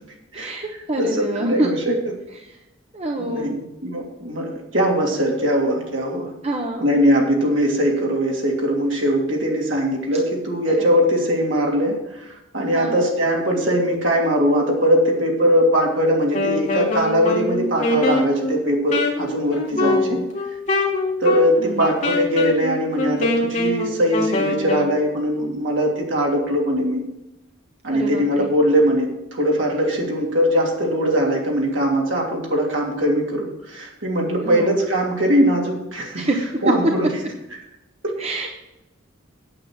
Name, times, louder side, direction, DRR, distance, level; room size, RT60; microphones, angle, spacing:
voice 1, 0.3-1.7 2.4-2.6 2.9-3.5 6.4-6.9 10.8-10.9 12.7-13.1 19.7-20.3 21.6-21.9 27.9-28.5 34.4-34.8 36.2-36.6 38.2-38.6, right 2 dB, 30° right, 1 dB, 1.0 m, -27 dB
voice 2, 1.0-1.9 3.2-6.3 6.8-20.2 21.2-27.0 27.8-36.2 36.6-37.1 38.0-38.1, equal, 65° right, -1 dB, 3.0 m, -21 dB
Wind instrument woodwind instrument, 16.2-25.0, left 2 dB, 35° left, 2.1 m, -24 dB
8.8 x 8.0 x 6.5 m, 0.95 s
head